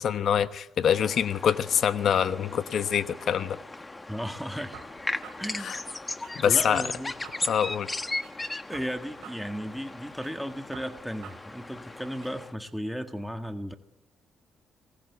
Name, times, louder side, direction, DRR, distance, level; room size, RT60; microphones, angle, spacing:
voice 1, 0.0-3.6 5.6-5.8 6.3-6.9 7.5-7.9, left 8 dB, 65° left, 12 dB, 1.1 m, -25 dB
sound 1, 0.8-12.5, left 2 dB, 20° left, 1.3 m, -37 dB
voice 2, 4.1-4.8 5.4-5.8 6.4-7.1 8.7-13.8, equal, ahead, 6 dB, 1.6 m, -35 dB
sound 2, 4.7-6.3 6.7-8.3 8.7-10.3 10.7-12.3, right 10 dB, 85° right, 4.1 m, -49 dB
27.0 x 19.5 x 8.3 m, 0.89 s
cardioid pair, 90°, 0 cm